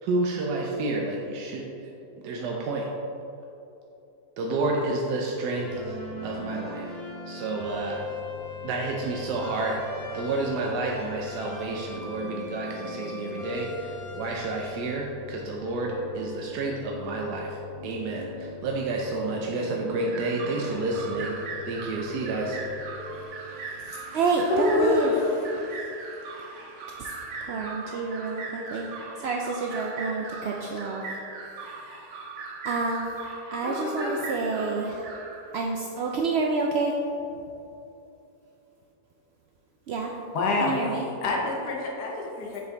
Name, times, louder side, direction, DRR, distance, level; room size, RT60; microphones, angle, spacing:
voice 1, 0.0-1.6 2.2-2.9 4.4-6.9 7.3-8.0 8.6-21.4 21.6-22.6, right 2 dB, 90° right, -1 dB, 1.3 m, -30 dB
sound 1, 5.5-23.3, left 3 dB, 40° left, 1.3 m, -40 dB
sound 2, 20.1-35.6, right 4 dB, 55° right, 1.0 m, -39 dB
voice 2, 23.8-25.1 27.0-31.1 31.4-32.1 32.6-33.1 33.5-35.1 35.5-36.9 39.9-40.1 40.6-41.1, right 4 dB, 70° right, 0 dB, 0.6 m, -29 dB
voice 3, 24.5-25.3 28.2-28.3 33.6-34.2 40.3-42.6, left 3 dB, 85° left, -1 dB, 1.6 m, -26 dB
7.0 x 5.2 x 3.9 m, 2.8 s
omnidirectional pair, 1.7 m